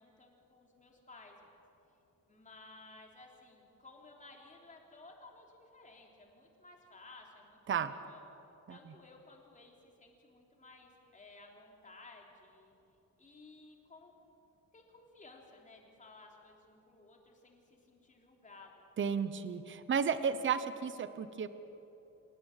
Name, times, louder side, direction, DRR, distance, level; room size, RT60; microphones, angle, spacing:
voice 1, 0.0-1.5 2.3-8.2 8.7-12.7 13.2-14.1 14.7-18.7, left 3 dB, 25° left, 0 dB, 3.5 m, -57 dB
voice 2, 19.0-21.5, right 6 dB, 35° right, 12 dB, 1.0 m, -33 dB
27.5 x 17.5 x 9.1 m, 3.0 s
wide cardioid pair, 180°, 33 cm